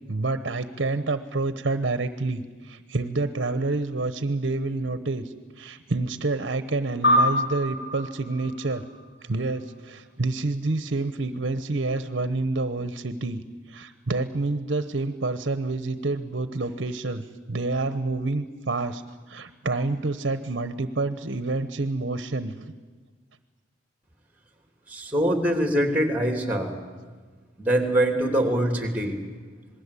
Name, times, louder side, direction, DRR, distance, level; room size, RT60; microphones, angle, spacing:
voice 1, 0.1-8.8 9.2-22.7, right 2 dB, 60° right, 11 dB, 1.0 m, -28 dB
sound 1, 7.0-9.8, left 1 dB, 60° left, 4.8 m, -26 dB
voice 2, 24.9-26.7 27.6-29.2, right 1 dB, 10° right, 5 dB, 3.1 m, -23 dB
27.0 x 20.5 x 8.4 m, 1.4 s
head